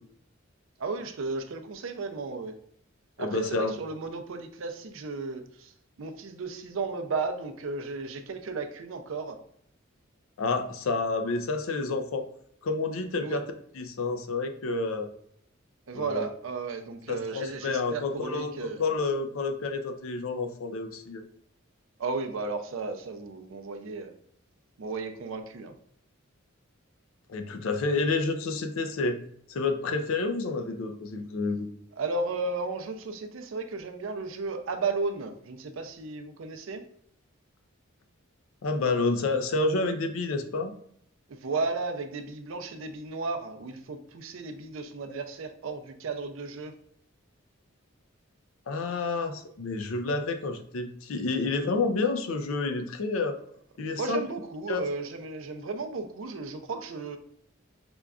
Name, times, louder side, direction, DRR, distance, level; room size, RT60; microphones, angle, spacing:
voice 1, 0.8-2.6 3.2-5.7 6.0-9.4 13.2-13.4 15.9-18.8 22.0-24.1 24.8-25.7 31.9-36.8 41.3-46.7 53.9-57.2, right 3 dB, 75° right, 7 dB, 0.4 m, -34 dB
voice 2, 3.2-3.7 10.4-12.2 12.6-15.1 15.9-16.3 17.1-21.2 27.3-29.2 29.5-31.7 38.6-40.7 48.7-53.4 53.8-54.2 54.7-54.8, left 3 dB, 90° left, 7 dB, 0.5 m, -29 dB
5.1 x 2.3 x 2.3 m, 0.66 s
head